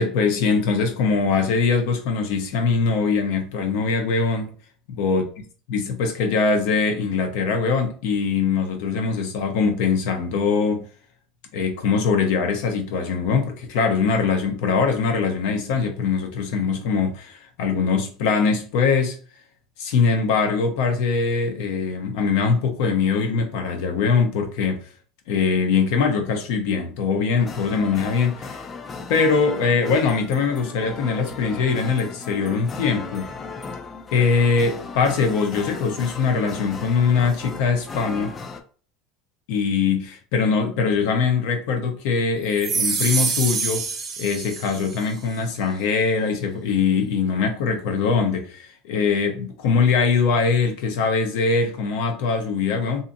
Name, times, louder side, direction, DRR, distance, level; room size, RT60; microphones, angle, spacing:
voice 1, 0.0-4.5 4.9-5.2 5.7-10.9 11.5-19.2 19.8-24.9 25.3-28.6 29.1-33.3 34.1-38.4 39.5-43.9 44.2-53.0, left 5 dB, 75° left, 0.7 m, -22 dB
sound 1, 27.4-38.6, left 4 dB, 25° left, 0.4 m, -36 dB
sound 2, 42.5-45.0, right 4 dB, 30° right, 0.6 m, -26 dB
2.7 x 2.6 x 2.6 m
supercardioid pair, 135°, 0 cm